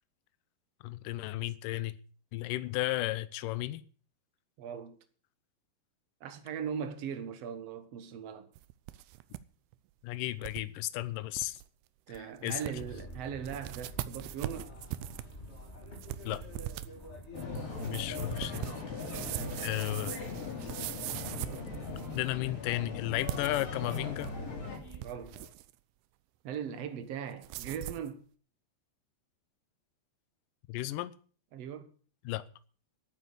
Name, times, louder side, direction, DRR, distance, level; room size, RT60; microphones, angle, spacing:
voice 1, 0.8-2.0 2.3-3.8 10.0-11.6 12.1-12.6 16.2-16.4 17.8-18.7 19.6-20.2 22.1-24.3 30.7-31.1 32.3-32.4, left 16 dB, 75° left, 2.0 m, -34 dB
voice 2, 4.6-5.0 6.2-8.5 12.1-14.7 19.1-19.6 25.0-25.4 26.4-28.2 31.5-31.9, right 7 dB, 65° right, 1.6 m, -39 dB
sound 1, 8.6-9.4 9.7-9.8 10.4-10.6 11.0-11.1 11.3-11.6 12.1-12.2 12.5-13.0 13.4-22.3 23.1-24.4 24.7-25.7 27.4-28.1, right 15 dB, 80° right, 2.7 m, -41 dB
sound 2, 12.7-25.5, left 1 dB, 20° left, 2.0 m, -49 dB
sound 3, 17.3-24.8, left 4 dB, 55° left, 5.7 m, -39 dB
11.5 x 9.1 x 8.1 m
omnidirectional pair, 4.8 m